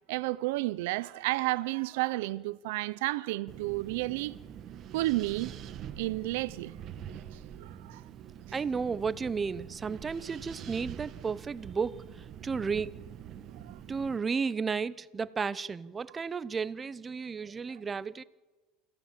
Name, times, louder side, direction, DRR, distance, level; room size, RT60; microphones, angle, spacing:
voice 1, 0.1-4.4 4.9-5.5 6.0-6.7 7.6-8.0, right 19 dB, 80° right, 0.7 m, -31 dB
Wind, 3.5-14.2, right 9 dB, 40° right, 1.2 m, -45 dB
voice 2, 8.5-12.0 12.4-12.9 13.9-18.2, right 5 dB, 20° right, 0.7 m, -33 dB
28.5 x 15.5 x 7.5 m
supercardioid pair, 140°, 0 cm